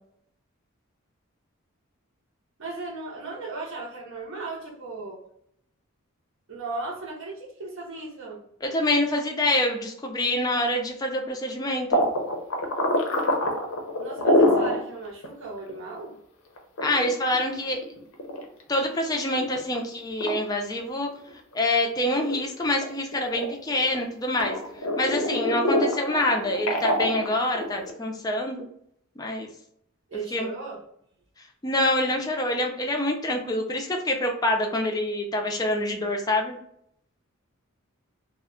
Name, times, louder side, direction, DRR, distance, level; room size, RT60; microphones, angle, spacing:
voice 1, 2.6-5.2 6.5-8.4 14.0-16.2 30.1-30.8, right 3 dB, 60° right, -4 dB, 0.6 m, -36 dB
voice 2, 8.6-12.0 16.8-17.8 18.7-21.1 21.5-24.6 25.0-28.7 29.2-29.5 30.3-30.5 31.6-36.6, left 1 dB, 15° left, 2 dB, 0.4 m, -26 dB
sound 1, 11.9-14.8 15.2-15.3 15.7-15.8 16.6-18.8 19.3-19.8 20.2-20.3 20.9-21.8 22.1-24.0 24.4-27.9, left 1 dB, 80° left, 0.6 m, -25 dB
2.2 x 2.1 x 3.6 m, 0.71 s
head